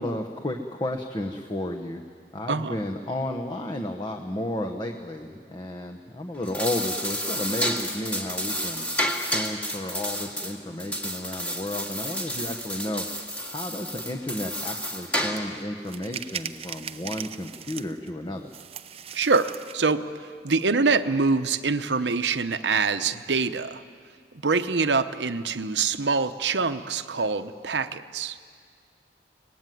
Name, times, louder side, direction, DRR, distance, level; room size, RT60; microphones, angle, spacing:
voice 1, 0.0-2.0 2.3-8.8 9.2-13.0 13.5-18.5, left 1 dB, 25° left, 3 dB, 1.1 m, -32 dB
sound 1, 6.3-15.6, equal, 10° left, 2.0 m, -31 dB
sound 2, 15.4-15.5 15.8-18.1 18.5-19.9, right 8 dB, 35° right, 0.7 m, -38 dB
voice 2, 19.1-23.8 24.4-28.4, right 4 dB, 80° right, 10 dB, 0.9 m, -25 dB
24.0 x 19.5 x 9.3 m, 2.1 s
head